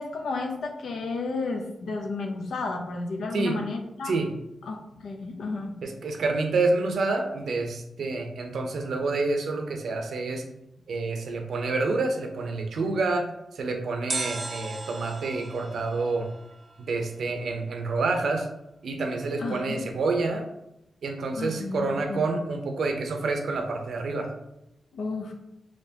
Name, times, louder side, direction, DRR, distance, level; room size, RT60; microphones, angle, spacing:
voice 1, 0.0-4.2 4.6-5.8 19.4-19.9 21.4-22.3 24.9-25.3, left 3 dB, 80° left, 3 dB, 0.6 m, -32 dB
voice 2, 5.8-10.4 10.9-13.3 13.5-16.3 16.8-18.5 18.8-20.4 21.0-24.3, right 3 dB, 75° right, 3 dB, 0.6 m, -28 dB
sound 1, 14.1-17.2 17.4-17.5, right 3 dB, 30° right, 0.3 m, -37 dB
4.3 x 3.0 x 2.8 m, 0.87 s
cardioid pair, 95°, 0 cm